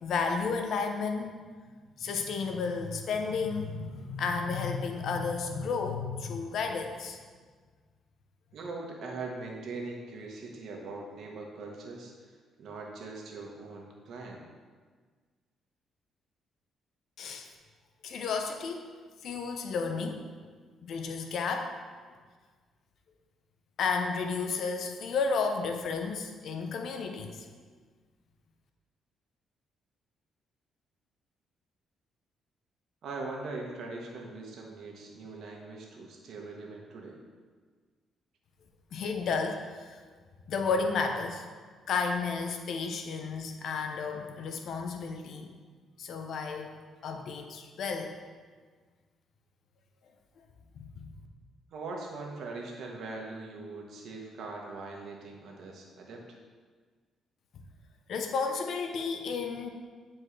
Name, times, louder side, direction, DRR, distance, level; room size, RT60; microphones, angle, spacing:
voice 1, 0.0-1.3 2.0-7.2 17.2-17.5 18.0-18.9 19.2-20.2 20.8-21.7 23.8-27.5 38.9-40.0 40.5-41.4 41.9-45.5 46.0-46.7 47.0-48.1 50.8-51.1 58.1-59.7, left 5 dB, 65° left, 5 dB, 0.7 m, -32 dB
voice 2, 8.5-14.4 33.0-37.2 51.7-56.4, right 3 dB, 70° right, 0 dB, 1.3 m, -41 dB
9.7 x 4.3 x 3.3 m, 1.5 s
cardioid pair, 90°, 0 cm